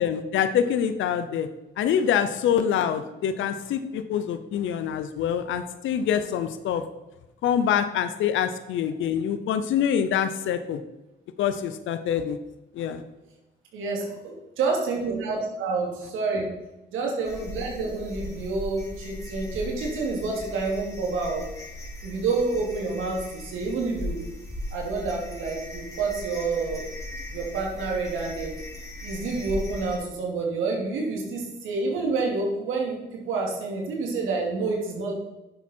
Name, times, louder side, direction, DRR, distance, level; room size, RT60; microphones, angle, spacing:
voice 1, 0.0-1.5 1.8-6.8 7.4-10.8 11.4-12.4 12.7-13.0, left 8 dB, 80° left, 10 dB, 0.8 m, -25 dB
voice 2, 13.7-16.5 16.9-21.4 22.0-24.2 24.7-26.8 27.3-28.5 29.0-35.1, right 3 dB, 90° right, -1 dB, 2.8 m, -28 dB
sound 1, 17.2-30.0, left 1 dB, 15° left, 3.3 m, -38 dB
10.5 x 7.2 x 4.5 m, 0.99 s
cardioid pair, 90°, 20 cm